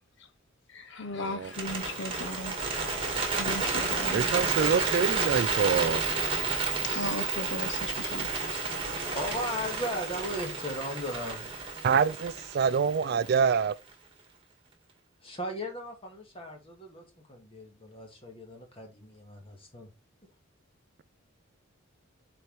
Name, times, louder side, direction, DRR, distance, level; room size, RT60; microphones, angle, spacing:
voice 1, 0.7-2.6 3.3-5.6 6.5-8.6, left 2 dB, 55° left, 0.8 m, -38 dB
Bird, 1.4-13.6, right 4 dB, 25° right, 2.0 m, -31 dB
voice 2, 4.1-6.0 11.8-13.7, right 6 dB, 50° right, 0.3 m, -26 dB
voice 3, 8.5-11.7 15.2-19.9, equal, 25° left, 2.0 m, -37 dB
6.4 x 4.3 x 4.7 m
head